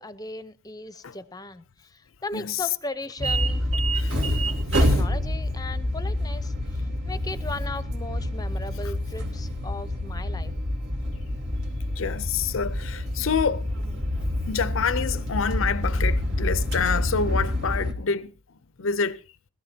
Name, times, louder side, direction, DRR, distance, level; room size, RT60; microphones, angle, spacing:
voice 1, 0.0-1.6 1.9-3.7 4.8-6.5 7.1-10.5, left 2 dB, 20° left, 0.8 m, -37 dB
voice 2, 2.3-2.7 3.9-4.4 4.7-4.9 12.0-13.7 14.5-18.3 18.8-19.2, left 6 dB, 70° left, 0.6 m, -27 dB
sound 1, 3.2-17.9, left 1 dB, 65° right, 3.0 m, -27 dB
20.0 x 14.0 x 2.8 m
head